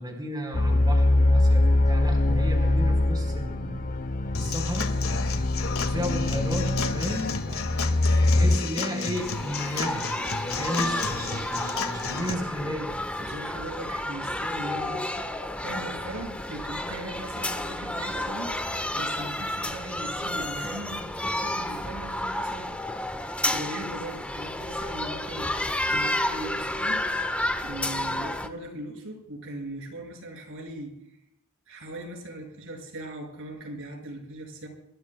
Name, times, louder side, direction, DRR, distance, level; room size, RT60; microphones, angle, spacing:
voice 1, 0.0-3.8 4.3-5.0 5.8-7.6 8.2-10.1 10.4-12.9, equal, 20° right, 1 dB, 4.0 m, -33 dB
sound 1, 0.5-8.6, left 2 dB, 40° left, 0.8 m, -23 dB
Human voice / Acoustic guitar / Drum, 4.3-12.3, left 5 dB, 70° left, 1.9 m, -33 dB
sound 2, 9.2-28.5, left 1 dB, 5° left, 1.2 m, -31 dB
voice 2, 13.2-18.6 18.9-22.7 23.4-27.1 27.6-31.0 31.7-34.7, right 1 dB, 65° right, 2 dB, 6.0 m, -39 dB
27.0 x 23.5 x 2.3 m, 0.85 s
head